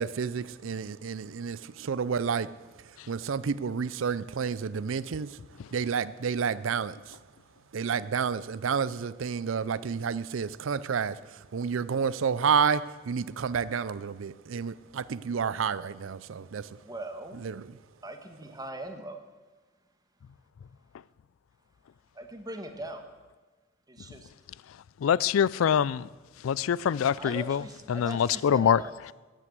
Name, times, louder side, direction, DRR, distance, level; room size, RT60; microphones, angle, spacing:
voice 1, 0.0-2.5 3.1-5.4 5.7-7.2 7.7-16.7 17.4-17.7, right 6 dB, 75° right, 0.5 m, -30 dB
voice 2, 16.8-17.4 18.0-19.2 22.1-23.0 23.9-24.3 27.2-29.1, right 1 dB, 20° right, 1.4 m, -40 dB
voice 3, 25.0-26.1 26.4-27.6 27.9-28.8, left 8 dB, 85° left, 0.3 m, -24 dB
13.5 x 9.2 x 8.0 m
head